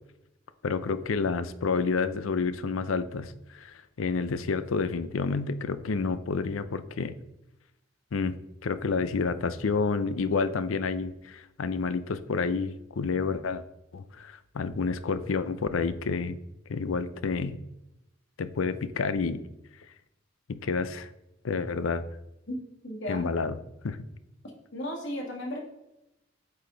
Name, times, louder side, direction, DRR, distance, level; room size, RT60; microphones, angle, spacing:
voice 1, 0.6-7.2 8.1-8.3 8.6-13.6 13.9-16.4 16.7-17.6 18.4-19.4 20.5-21.1 21.4-22.0 23.1-23.6 23.8-24.1, left 4 dB, 90° left, 13 dB, 0.5 m, -29 dB
voice 2, 22.5-23.3 24.7-25.6, left 1 dB, 65° left, 1 dB, 1.8 m, -35 dB
8.1 x 4.8 x 3.9 m, 0.86 s
head